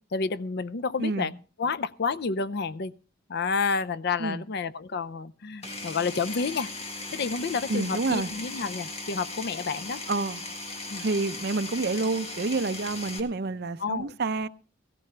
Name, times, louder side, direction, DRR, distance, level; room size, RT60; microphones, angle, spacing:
voice 1, 0.1-2.9 3.3-6.7 7.1-10.0 10.9-11.1 13.8-14.2, left 4 dB, 55° left, 0.5 m, -30 dB
voice 2, 1.0-1.3 4.2-4.4 7.7-8.3 10.1-10.4 11.0-14.5, right 3 dB, 55° right, 0.6 m, -28 dB
Power tool, 5.6-13.2, left 2 dB, 35° left, 1.8 m, -38 dB
16.0 x 14.5 x 3.3 m
head